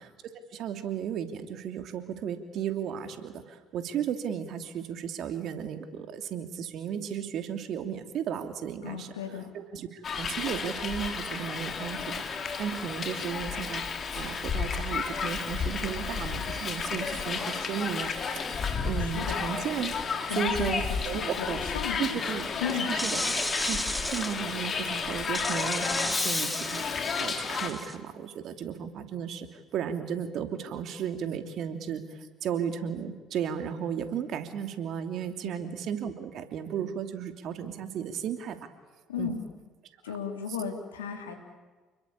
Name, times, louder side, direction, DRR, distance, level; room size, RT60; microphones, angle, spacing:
voice 1, 0.5-9.1 9.5-13.8 14.1-18.4 18.8-19.9 20.4-21.6 22.0-22.5 22.9-23.2 23.7-38.6 39.2-39.3 40.1-40.2, right 8 dB, 60° right, 7 dB, 2.9 m, -34 dB
voice 2, 8.8-9.5 19.0-19.5 20.3-22.2 22.6-23.3 35.4-35.7 39.1-39.5 40.0-41.4, left 6 dB, 85° left, 4 dB, 3.5 m, -36 dB
Hiss, 10.0-27.7, left 5 dB, 45° left, 3.9 m, -32 dB
sound 1, 20.1-20.3 22.7-24.4 25.3-28.0, equal, ahead, 2.9 m, -33 dB
29.5 x 21.5 x 8.6 m, 1.3 s
hypercardioid pair, 55°, 0 cm